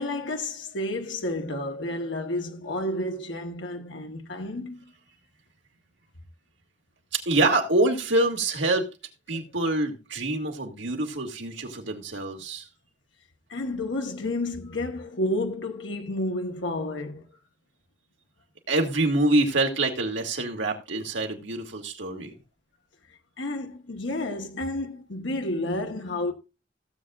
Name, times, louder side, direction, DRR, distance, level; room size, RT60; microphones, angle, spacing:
voice 1, 0.0-4.9 13.5-17.3 23.4-26.3, left 1 dB, 80° left, 1.2 m, -31 dB
voice 2, 7.1-8.9 9.3-12.7 18.7-22.3, right 2 dB, 80° right, 2.2 m, -25 dB
16.5 x 7.5 x 2.4 m
head